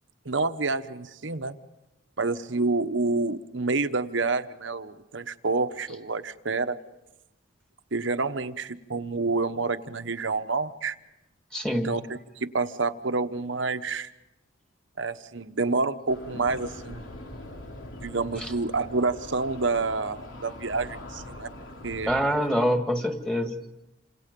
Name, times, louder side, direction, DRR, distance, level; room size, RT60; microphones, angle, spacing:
voice 1, 0.2-1.5 2.2-6.8 7.9-10.9 11.8-14.1 15.0-17.1 18.0-21.5 21.8-22.1, right 3 dB, 65° right, 9 dB, 1.1 m, -28 dB
voice 2, 11.5-11.9 18.4-18.5 22.1-23.6, equal, 5° left, 5 dB, 2.0 m, -25 dB
sound 1, 16.1-22.3, left 1 dB, 80° left, 3.2 m, -42 dB
28.5 x 26.5 x 5.4 m, 0.96 s
head